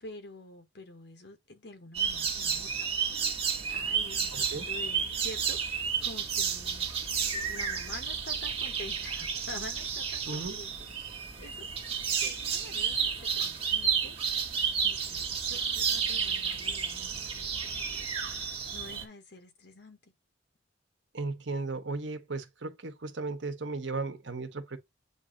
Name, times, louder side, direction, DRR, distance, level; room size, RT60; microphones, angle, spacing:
voice 1, 0.0-6.9 7.2-10.7 11.0-11.7 12.2-14.2 14.8-18.3 18.7-20.1, left 2 dB, 65° left, 1.5 m, -48 dB
sound 1, 1.9-19.0, right 6 dB, 35° right, 1.5 m, -31 dB
voice 2, 4.3-4.7 10.3-10.6 21.1-24.8, right 3 dB, 75° right, 1.2 m, -36 dB
8.1 x 2.8 x 5.1 m
head